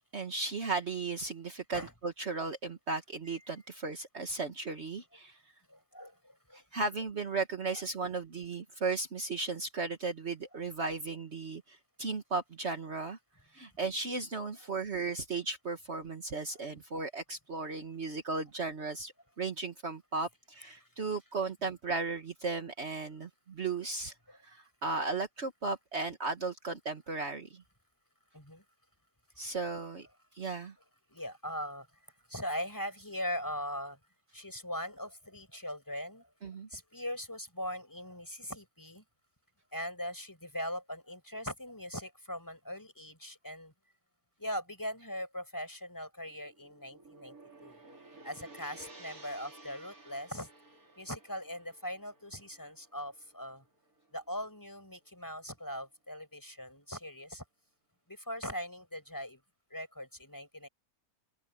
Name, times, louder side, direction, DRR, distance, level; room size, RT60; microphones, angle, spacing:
voice 1, 0.1-5.4 6.7-13.2 13.5-19.1 19.4-24.1 24.4-27.6 29.4-30.1 30.4-30.7 36.4-36.7, right 3 dB, 50° right, 1.7 m, -35 dB
voice 2, 5.7-6.6 7.7-7.8 20.8-21.1 24.3-24.4 28.3-28.6 31.1-31.9 32.3-34.0 34.3-36.3 36.7-39.0 39.7-43.7 44.4-47.4 47.6-47.8 48.2-50.5 51.0-53.6 54.1-57.4 58.1-59.4 59.7-60.7, equal, 15° left, 5.2 m, -40 dB
Gong, 46.2-54.6, right 2 dB, 85° right, 4.5 m, -55 dB
open air
omnidirectional pair, 1.5 m